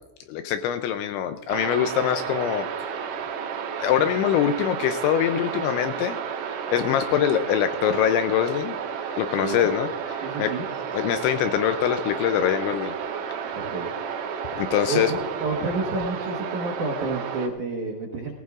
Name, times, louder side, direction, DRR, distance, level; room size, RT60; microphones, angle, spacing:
voice 1, 0.3-2.7 3.8-6.2 6.7-8.8 9.2-10.5 10.9-13.0 14.6-15.1, left 10 dB, 80° left, 8 dB, 2.7 m, -23 dB
sound 1, 1.5-17.5, right 7 dB, 85° right, 4.2 m, -32 dB
voice 2, 9.4-9.7 10.2-10.7 13.5-13.9 14.9-18.3, right 3 dB, 70° right, 0 dB, 1.9 m, -30 dB
18.5 x 18.5 x 2.5 m, 1.0 s
omnidirectional pair, 5.8 m